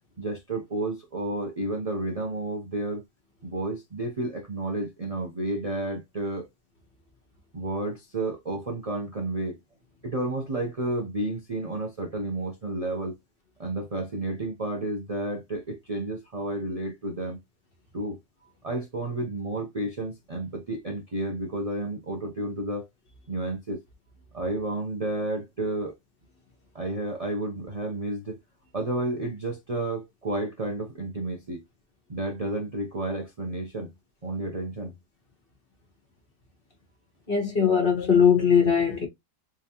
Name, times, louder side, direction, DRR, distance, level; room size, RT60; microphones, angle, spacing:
voice 1, 0.2-3.0 3.4-6.5 7.5-9.6 10.0-13.2 13.6-17.4 17.9-18.2 18.6-22.9 23.3-23.8 24.3-25.9 26.7-28.4 28.7-31.6 32.1-33.9 34.2-35.0, right 2 dB, 75° right, 0.3 m, -31 dB
voice 2, 37.3-39.1, left 7 dB, 35° left, 1.4 m, -20 dB
3.7 x 3.4 x 2.8 m
omnidirectional pair, 1.8 m